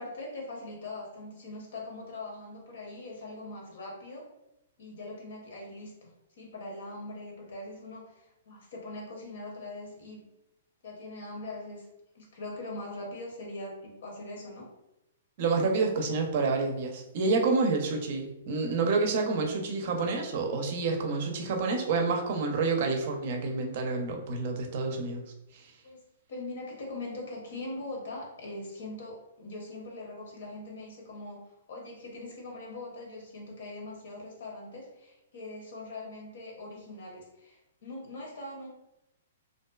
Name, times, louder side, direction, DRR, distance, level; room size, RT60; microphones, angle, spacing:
voice 1, 0.0-4.3 4.8-10.3 10.8-11.9 12.1-14.7 25.8-26.0 26.3-31.4 31.7-38.7, left 2 dB, 70° left, -1 dB, 0.9 m, -41 dB
voice 2, 15.4-25.2 25.5-25.6, right 4 dB, 55° right, 3 dB, 0.5 m, -28 dB
2.5 x 2.2 x 2.3 m, 0.89 s
hypercardioid pair, 120°, 0 cm